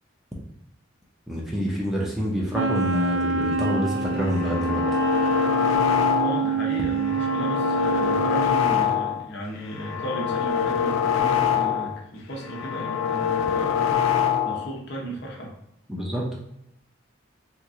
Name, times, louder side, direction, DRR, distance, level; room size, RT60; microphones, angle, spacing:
voice 1, 1.3-4.9 15.9-16.3, equal, ahead, -4 dB, 0.5 m, -27 dB
Wind instrument woodwind instrument, 2.5-8.7, right 4 dB, 70° right, 0.3 m, -26 dB
sound 1, 4.2-6.5 6.9-9.3 9.6-12.0 12.3-14.7, left 8 dB, 75° left, 0.3 m, -24 dB
voice 2, 6.2-14.0 14.4-15.5, right 1 dB, 55° left, 0 dB, 0.8 m, -35 dB
2.9 x 2.5 x 3.6 m, 0.81 s
head